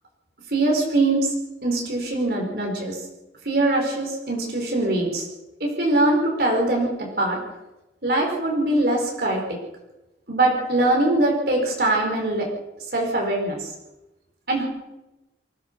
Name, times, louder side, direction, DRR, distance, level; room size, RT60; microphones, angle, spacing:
voice 1, 0.5-1.3 1.6-2.9 3.4-5.3 5.6-7.4 8.0-9.4 10.3-12.5 12.9-13.7 14.5-14.7, right 2 dB, 55° right, 0 dB, 4.7 m, -22 dB
23.5 x 16.0 x 6.8 m, 1.0 s
head